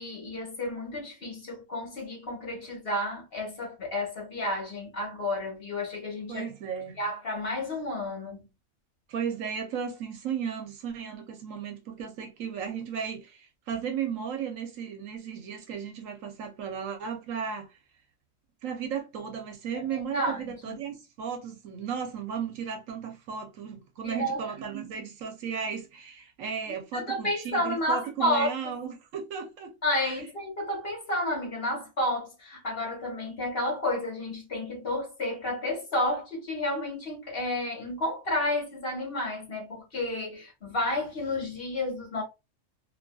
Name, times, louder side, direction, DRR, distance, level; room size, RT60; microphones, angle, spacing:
voice 1, 0.0-6.5 7.0-8.4 19.9-20.8 24.0-24.4 26.7-28.5 29.8-42.2, left 1 dB, 50° left, 1.4 m, -31 dB
voice 2, 6.3-7.0 9.1-17.8 18.6-29.7 30.0-30.2, right 7 dB, 75° right, 1.1 m, -35 dB
2.8 x 2.5 x 2.3 m
omnidirectional pair, 1.4 m